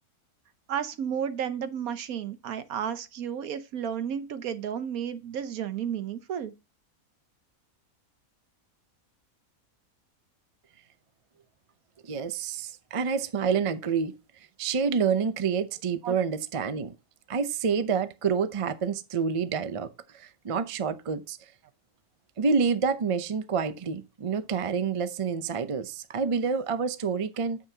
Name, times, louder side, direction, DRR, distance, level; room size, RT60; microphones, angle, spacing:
voice 1, 0.7-6.5 16.0-16.1, right 8 dB, 70° right, 1.3 m, -32 dB
voice 2, 12.0-14.1 14.6-16.9 17.3-21.4 22.4-27.6, right 6 dB, 45° right, 0.4 m, -28 dB
9.1 x 7.5 x 2.8 m
omnidirectional pair, 1.6 m